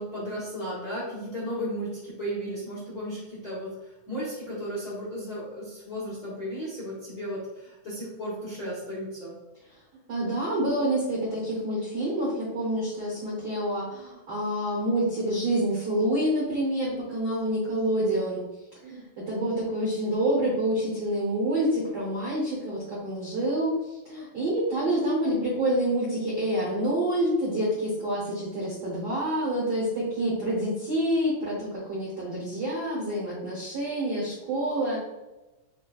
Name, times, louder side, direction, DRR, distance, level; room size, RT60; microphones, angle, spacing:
voice 1, 0.0-9.3, equal, 55° left, -8 dB, 1.0 m, -35 dB
voice 2, 10.1-18.4 18.8-35.0, right 1 dB, 80° right, -5 dB, 0.9 m, -27 dB
6.6 x 2.3 x 2.4 m, 1.0 s
omnidirectional pair, 3.4 m